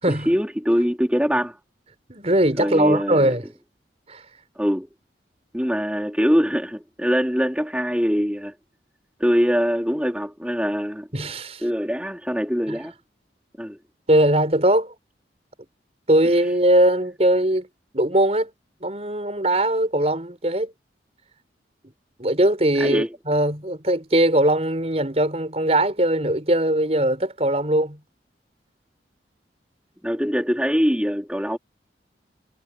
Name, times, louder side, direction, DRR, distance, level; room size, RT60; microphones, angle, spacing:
voice 1, 0.1-1.6 2.6-3.3 4.6-4.9 5.5-8.5 9.2-11.1 11.6-12.9 13.6-13.8 22.8-23.1 30.0-31.6, equal, 5° right, 3.2 m, -23 dB
voice 2, 2.1-3.4 4.1-4.2 11.1-11.6 12.7-12.8 14.1-15.0 16.1-17.7 17.9-18.5 18.8-20.7 22.2-28.0, right 1 dB, 35° right, 5.1 m, -20 dB
head